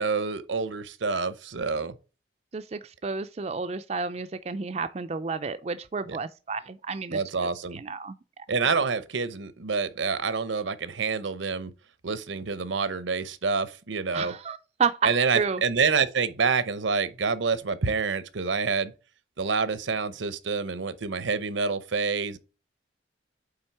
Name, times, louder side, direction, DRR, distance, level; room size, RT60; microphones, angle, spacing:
voice 1, 0.0-1.9 6.0-6.2 7.1-7.8 8.5-11.7 12.0-14.3 15.0-18.9 19.4-22.4, right 5 dB, 80° right, 0.8 m, -27 dB
voice 2, 2.5-7.2 7.7-8.2 14.1-15.6, right 5 dB, 35° right, 0.4 m, -31 dB
8.8 x 3.6 x 4.6 m
head